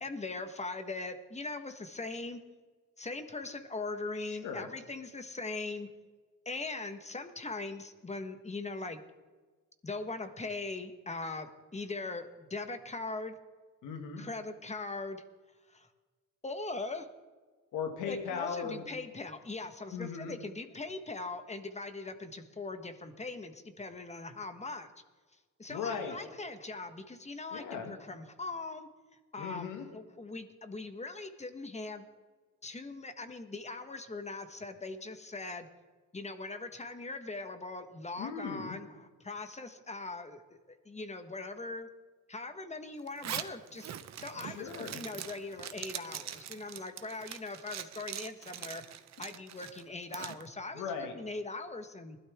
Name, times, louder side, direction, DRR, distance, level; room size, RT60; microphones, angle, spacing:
voice 1, 0.0-2.4 3.0-5.9 6.4-9.0 9.8-13.3 14.2-15.2 15.7-15.9 16.4-17.1 18.1-24.9 25.6-28.9 29.3-32.0 32.6-35.7 36.1-41.9 42.3-43.9 44.2-48.8 49.2-50.8 51.1-52.2, left 3 dB, 20° left, 8 dB, 1.4 m, -40 dB
voice 2, 4.3-4.7 13.8-14.2 17.7-18.9 19.9-20.3 25.7-26.2 27.5-27.9 29.4-29.9 38.2-38.8 44.4-45.0 50.7-51.1, left 6 dB, 90° left, 4 dB, 2.1 m, -38 dB
Zipper (clothing), 43.1-50.4, right 10 dB, 65° right, 1.0 m, -43 dB
20.0 x 12.5 x 3.7 m, 1.4 s
cardioid pair, 90°, 30 cm